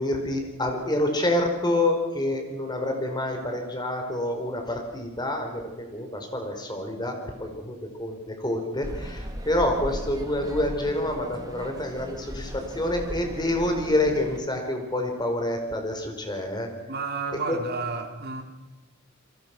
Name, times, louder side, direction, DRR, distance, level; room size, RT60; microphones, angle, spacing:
voice 1, 0.0-16.7 17.3-17.6, left 1 dB, 20° left, 4.6 m, -27 dB
sound 1, 8.8-14.4, equal, 20° right, 2.3 m, -37 dB
voice 2, 16.9-18.4, right 4 dB, 50° right, 3.6 m, -31 dB
29.0 x 23.0 x 6.1 m
head